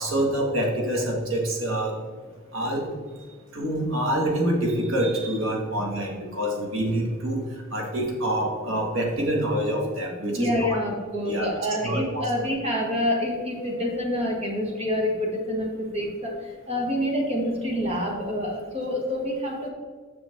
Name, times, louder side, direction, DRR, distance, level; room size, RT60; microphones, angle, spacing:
voice 1, 0.0-1.9 2.5-2.9 3.5-7.4 7.7-10.7 11.3-11.5 11.8-12.3, right 1 dB, 70° right, 0 dB, 1.8 m, -26 dB
voice 2, 10.4-16.3 16.7-19.7, left 1 dB, 30° right, -1 dB, 1.6 m, -27 dB
7.0 x 6.2 x 3.6 m, 1.5 s
head